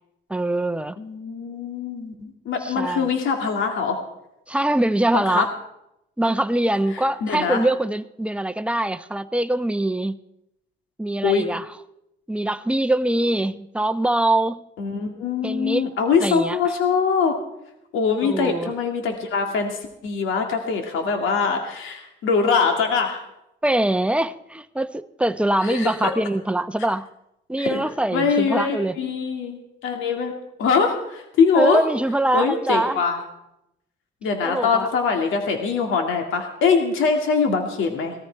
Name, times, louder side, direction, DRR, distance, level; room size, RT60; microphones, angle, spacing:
voice 1, 0.3-1.0 2.6-3.1 4.5-5.5 6.2-10.2 11.0-11.7 12.3-14.6 15.4-15.9 16.2-16.7 18.2-18.7 23.6-27.1 27.5-29.0 31.5-33.0 34.4-34.9, right 1 dB, 5° right, 11 dB, 0.7 m, -23 dB
voice 2, 1.0-4.0 5.1-5.4 7.2-7.6 11.2-11.4 14.8-17.3 17.9-23.2 25.6-26.1 27.6-27.8 28.1-30.3 30.6-31.8 32.3-33.2 34.2-38.1, left 5 dB, 85° left, 3 dB, 2.2 m, -23 dB
20.0 x 14.0 x 4.6 m, 0.85 s
cardioid pair, 90°, 20 cm